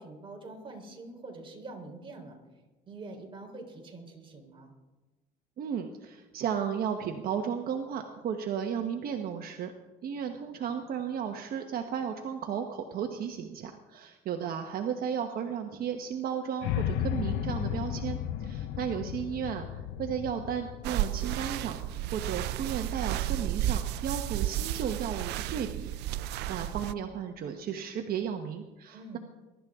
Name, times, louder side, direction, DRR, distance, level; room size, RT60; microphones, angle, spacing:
voice 1, 0.0-2.4 2.9-4.7 28.9-29.2, right 2 dB, 30° right, 1 dB, 3.8 m, -45 dB
voice 2, 5.6-9.7 10.0-25.9 26.2-29.2, right 8 dB, 60° right, 5 dB, 1.2 m, -34 dB
sound 1, 16.6-22.7, left 10 dB, 90° left, 0.8 m, -34 dB
sound 2, 20.8-26.9, right 13 dB, 85° right, 0.5 m, -32 dB
22.0 x 12.5 x 3.7 m, 1.2 s
cardioid pair, 110°, 17 cm